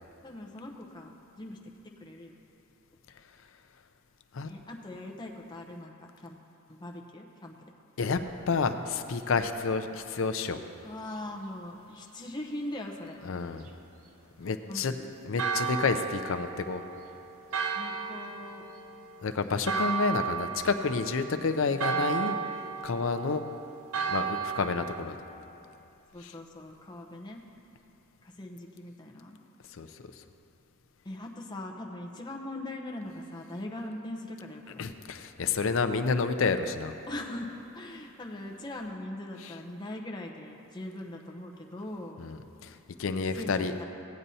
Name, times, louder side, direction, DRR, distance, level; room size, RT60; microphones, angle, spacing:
voice 1, 0.2-1.6 2.0-2.4 4.4-6.4 6.7-7.5 10.8-13.2 14.7-15.1 17.7-18.6 21.7-22.7 26.1-27.4 28.2-29.4 31.0-34.8 37.1-37.5 37.7-42.3 43.2-43.8, left 1 dB, 20° left, 1 dB, 0.7 m, -41 dB
voice 2, 8.5-10.6 13.2-13.7 14.4-14.9 15.2-16.8 19.2-22.4 22.8-23.4 24.1-25.2 26.2-26.3 29.7-29.9 34.8-36.9 39.4-39.5 42.2-43.7, left 4 dB, 65° left, 8 dB, 0.5 m, -29 dB
Church bell, 15.4-25.0, right 6 dB, 90° right, 0.7 m, -34 dB
16.5 x 8.8 x 2.8 m, 2.8 s
head